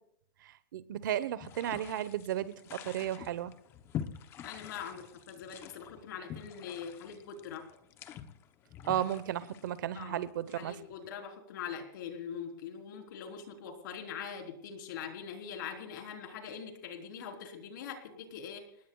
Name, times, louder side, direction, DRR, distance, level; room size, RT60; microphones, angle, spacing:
voice 1, 0.7-3.5 8.8-10.7, right 11 dB, 60° right, 15 dB, 1.0 m, -34 dB
sound 1, 1.4-11.0, left 9 dB, 20° left, 0.8 m, -46 dB
voice 2, 4.4-7.6 9.9-10.2 10.6-18.6, left 7 dB, 60° left, 3 dB, 3.9 m, -43 dB
29.5 x 19.5 x 2.4 m, 0.70 s
supercardioid pair, 165°, 12 cm